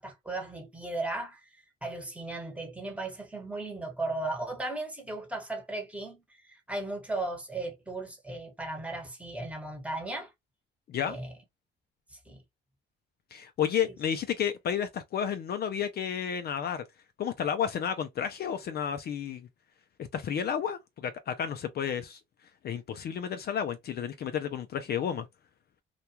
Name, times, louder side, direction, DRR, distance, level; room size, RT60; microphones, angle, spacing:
voice 1, 0.0-10.3 11.1-11.3 12.1-12.4 13.9-14.0, right 2 dB, 5° right, 1.0 m, -36 dB
voice 2, 13.3-16.8 17.2-19.5 20.0-22.2 22.6-25.3, left 8 dB, 55° left, 0.4 m, -31 dB
2.3 x 2.2 x 2.8 m
cardioid pair, 90°, 20 cm